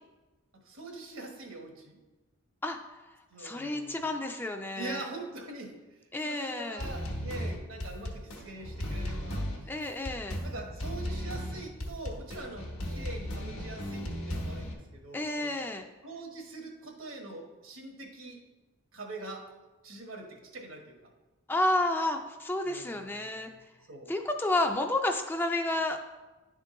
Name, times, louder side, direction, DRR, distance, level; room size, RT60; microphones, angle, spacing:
voice 1, 0.6-2.0 3.3-4.0 4.7-5.7 6.2-9.7 10.4-15.6 16.0-18.4 18.9-19.4 19.8-21.1 22.6-24.1, right 2 dB, 75° right, 2 dB, 1.3 m, -43 dB
voice 2, 3.4-5.1 6.1-6.8 9.7-10.4 15.1-15.9 21.5-23.5 24.1-26.0, left 2 dB, 10° left, 5 dB, 0.3 m, -30 dB
sound 1, 6.8-14.7, equal, 90° left, 1.1 m, -36 dB
10.0 x 3.7 x 3.7 m, 1.2 s
head